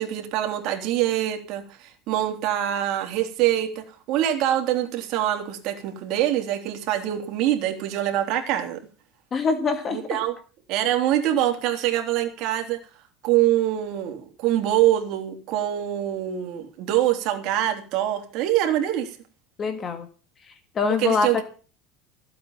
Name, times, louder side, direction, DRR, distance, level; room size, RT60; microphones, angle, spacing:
voice 1, 0.0-8.8 9.9-10.3 10.7-12.8 13.2-19.1 21.0-21.4, right 12 dB, 55° right, 4 dB, 3.4 m, -24 dB
voice 2, 9.3-10.2 19.6-20.1 20.7-21.4, left 4 dB, 25° left, 9 dB, 1.6 m, -24 dB
16.0 x 8.4 x 7.4 m, 0.38 s
supercardioid pair, 140°, 0 cm